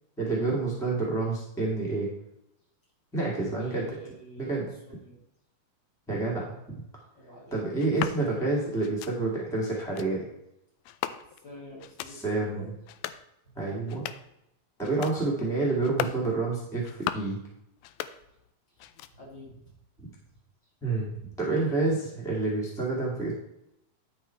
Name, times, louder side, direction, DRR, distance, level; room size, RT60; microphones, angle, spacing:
voice 1, 0.2-2.1 3.1-3.8 4.4-4.6 6.1-6.6 7.5-10.2 12.0-12.6 13.5-14.0 14.8-17.4 20.8-23.3, right 3 dB, ahead, -4 dB, 0.9 m, -28 dB
voice 2, 3.4-5.2 7.1-7.6 11.4-12.7 19.1-19.7, equal, 30° left, -5 dB, 3.6 m, -46 dB
sound 1, 7.8-8.2 8.8-9.1 9.8-10.1 10.8-11.5 11.8-12.2 12.8-13.2 13.8-14.3 14.8-15.2 15.8-16.2 16.8-17.4 17.8-18.5 18.8-19.4, left 12 dB, 90° left, 2.5 m, -37 dB
11.0 x 5.8 x 4.5 m, 0.83 s
omnidirectional pair, 4.3 m